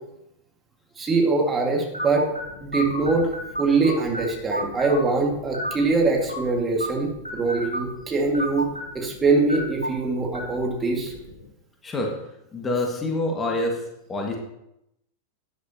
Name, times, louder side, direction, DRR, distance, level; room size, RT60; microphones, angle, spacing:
voice 1, 1.0-2.2 2.6-3.3 3.6-8.7 8.9-11.1, right 3 dB, 20° right, 1 dB, 2.0 m, -23 dB
sound 1, 1.9-11.5, equal, 85° left, 2.6 m, -34 dB
voice 2, 11.8-12.1 12.5-13.8 14.1-14.4, left 2 dB, 20° left, 1 dB, 1.8 m, -26 dB
12.5 x 10.0 x 2.9 m, 0.84 s
figure-of-eight pair, 90°, 0 cm